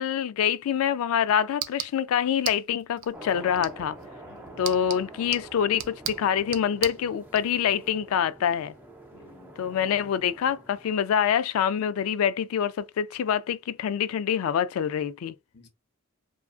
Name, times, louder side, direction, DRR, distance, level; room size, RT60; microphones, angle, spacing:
voice 1, 0.0-4.0 4.6-8.7 9.6-15.3, left 8 dB, 75° left, 0.3 m, -26 dB
sound 1, 0.8-7.4, right 11 dB, 65° right, 0.4 m, -39 dB
sound 2, 3.1-10.9, right 1 dB, 10° right, 0.5 m, -46 dB
voice 2, 4.2-4.8 9.1-9.8 15.5-15.7, left 3 dB, 50° left, 0.7 m, -55 dB
2.4 x 2.4 x 2.3 m
head